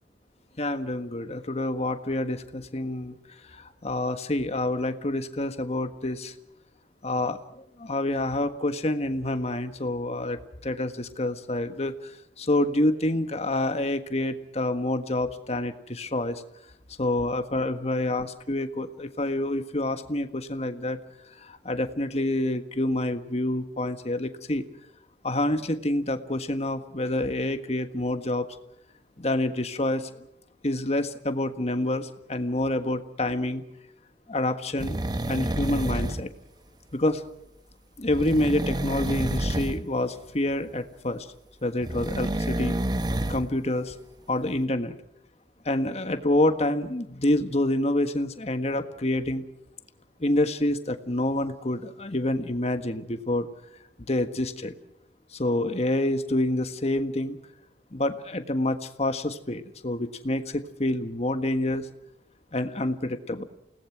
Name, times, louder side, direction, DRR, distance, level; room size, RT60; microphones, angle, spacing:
voice 1, 0.6-3.2 3.5-6.3 7.0-7.4 7.8-12.1 12.4-16.4 17.0-21.0 21.4-24.6 25.2-28.4 29.2-30.1 30.6-33.6 34.3-35.0 35.3-36.3 36.9-37.2 38.0-41.3 41.6-42.8 43.3-43.9 44.3-44.9 45.6-49.4 50.2-53.5 54.1-54.7 55.3-57.4 57.9-61.9 62.5-63.4, left 1 dB, 40° left, 8 dB, 1.6 m, -27 dB
sound 1, 34.8-36.3 38.1-39.8 41.8-43.5 43.9-44.0, right 1 dB, 25° right, 0.9 m, -29 dB
29.5 x 19.0 x 6.1 m, 0.77 s
head